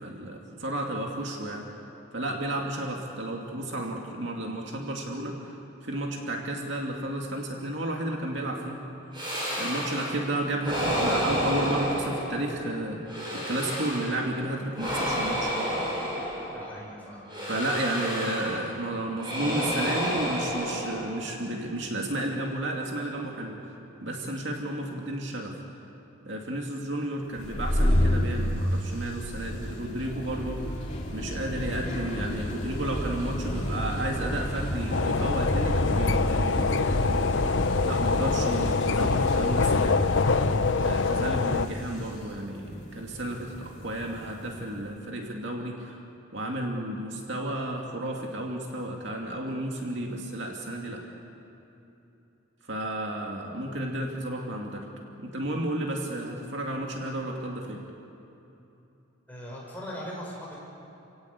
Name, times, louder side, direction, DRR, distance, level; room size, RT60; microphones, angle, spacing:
voice 1, 0.0-1.6 2.1-5.5 5.8-8.8 9.6-15.5 17.5-25.6 26.2-30.8 31.1-37.2 37.8-40.0 40.8-46.0 46.3-51.0 52.7-54.9 55.2-57.8, right 1 dB, 55° right, 0 dB, 2.6 m, -32 dB
sound 1, 9.1-10.2 10.6-12.6 13.0-14.3 14.7-16.7 17.3-18.7 19.2-21.3, equal, 20° right, 7.1 m, -30 dB
voice 2, 16.5-17.3 59.3-60.6, equal, 10° left, -4 dB, 5.9 m, -39 dB
sound 2, 27.4-44.7, equal, 35° left, 2.5 m, -31 dB
sound 3, 34.9-41.7, left 4 dB, 60° left, 0.7 m, -25 dB
28.5 x 17.5 x 8.5 m, 2.9 s
head